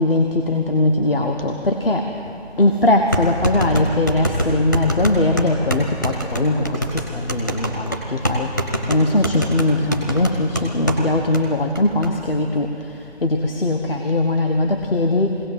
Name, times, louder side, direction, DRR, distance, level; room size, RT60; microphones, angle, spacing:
voice 1, 0.0-2.1 2.6-8.5 8.9-12.7 13.2-15.4, left 2 dB, 55° left, 3 dB, 1.4 m, -20 dB
sound 1, 2.2-2.3 3.1-11.0 11.3-11.4 11.8-12.1, equal, 15° left, 0.9 m, -24 dB
22.5 x 17.0 x 7.6 m, 2.7 s
figure-of-eight pair, 175°, 35 cm